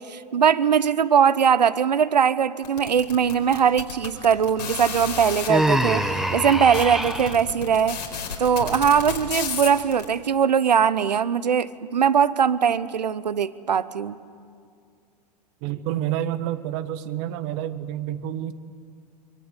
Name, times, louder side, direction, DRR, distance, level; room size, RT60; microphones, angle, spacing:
voice 1, 0.0-8.0 8.4-14.2, right 7 dB, 80° right, 16 dB, 1.0 m, -21 dB
sound 1, 2.6-5.5 6.2-6.3 6.5-10.0, left 6 dB, 85° left, 4.5 m, -31 dB
Human voice, 5.5-7.4, right 1 dB, ahead, 1.4 m, -24 dB
voice 2, 15.6-18.5, right 12 dB, 50° right, 11 dB, 1.5 m, -28 dB
24.0 x 23.0 x 8.3 m, 2.3 s
figure-of-eight pair, 95°, 21 cm